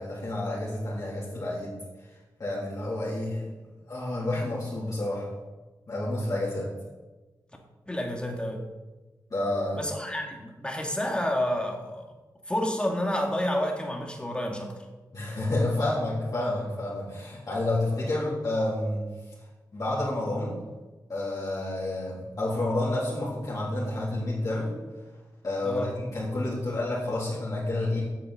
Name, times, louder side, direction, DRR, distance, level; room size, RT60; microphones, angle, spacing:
voice 1, 0.0-1.8 2.4-3.4 3.9-5.3 5.9-6.7 9.3-9.8 15.1-19.0 19.7-20.6 21.1-24.7 25.4-28.0, left 2 dB, 50° left, -9 dB, 3.7 m, -29 dB
voice 2, 7.9-8.6 9.7-12.1 12.5-14.7 25.6-25.9, left 1 dB, 15° left, 1 dB, 2.4 m, -29 dB
9.1 x 6.8 x 8.3 m, 1.2 s
cardioid pair, 75°, 7 cm